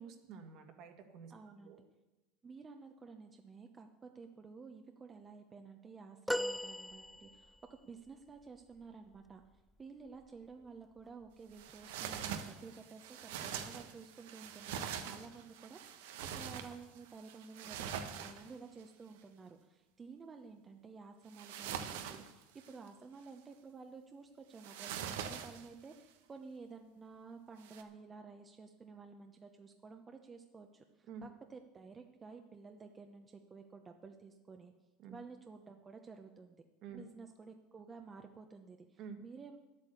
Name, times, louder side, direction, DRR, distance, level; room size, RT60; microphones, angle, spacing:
voice 1, 0.0-1.3 1.6-1.8 31.1-31.3 35.0-35.2 36.8-37.0 39.0-39.2, right 6 dB, 55° right, 5 dB, 1.9 m, -49 dB
voice 2, 1.3-1.8 2.4-7.6 7.8-9.4 9.8-34.7 35.1-36.6 37.0-39.6, right 4 dB, 20° right, 4 dB, 0.9 m, -52 dB
sound 1, 6.3-7.7 10.1-10.3 11.6-11.7, equal, ahead, 0.4 m, -38 dB
sound 2, 11.5-18.8 21.3-22.9 24.6-25.9 27.6-27.8, right 8 dB, 85° right, 1.1 m, -44 dB
10.5 x 8.5 x 8.1 m, 1.1 s
supercardioid pair, 115°, 0 cm